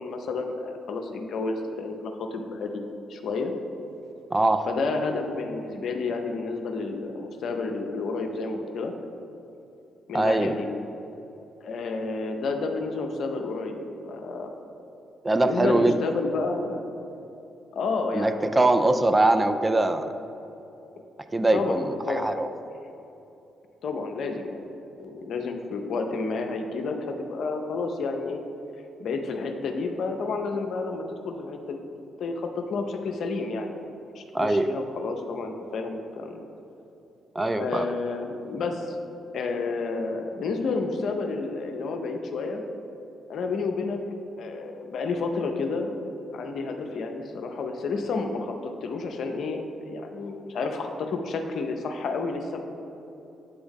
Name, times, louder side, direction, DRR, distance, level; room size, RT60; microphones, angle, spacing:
voice 1, 0.0-3.5 4.7-8.9 10.1-10.7 11.6-14.5 15.4-16.8 17.7-19.0 21.5-22.3 23.8-24.7 25.0-28.4 29.0-33.8 34.1-36.4 37.6-39.0 39.3-42.6 43.3-44.0 44.4-45.9 46.3-52.6, left 3 dB, 55° left, 4 dB, 0.5 m, -30 dB
voice 2, 4.3-4.7 10.1-10.5 15.2-15.9 18.1-20.1 21.3-22.5 34.3-34.7 37.4-37.9, right 2 dB, 20° right, 8 dB, 0.3 m, -22 dB
8.1 x 3.4 x 3.7 m, 3.0 s
figure-of-eight pair, 40°, 0 cm